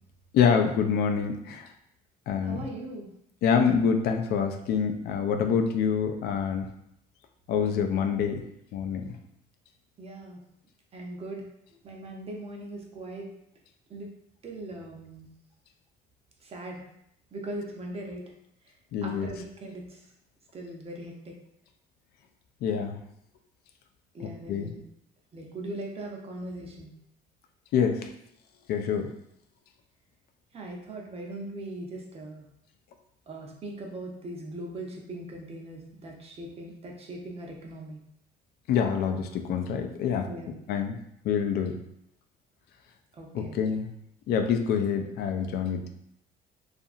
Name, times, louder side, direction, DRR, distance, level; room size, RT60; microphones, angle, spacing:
voice 1, 0.3-1.7 2.3-2.7 3.4-6.7 7.5-8.4 8.7-9.2 18.9-19.3 22.6-23.0 24.2-24.7 27.7-28.1 28.7-29.1 38.7-40.3 40.7-41.0 41.2-41.8 43.3-43.9 44.3-45.9, left 7 dB, 70° left, 5 dB, 0.4 m, -26 dB
voice 2, 2.4-3.1 10.0-10.4 10.9-11.5 11.8-13.3 13.9-14.1 14.4-15.3 16.4-16.8 17.3-18.2 19.0-20.0 20.5-21.3 24.1-24.8 25.3-26.9 30.5-32.5 33.3-38.0 40.3-40.6 43.1-43.6, right 1 dB, 35° right, 0 dB, 0.6 m, -40 dB
2.7 x 2.5 x 2.4 m, 0.76 s
cardioid pair, 110°, 17 cm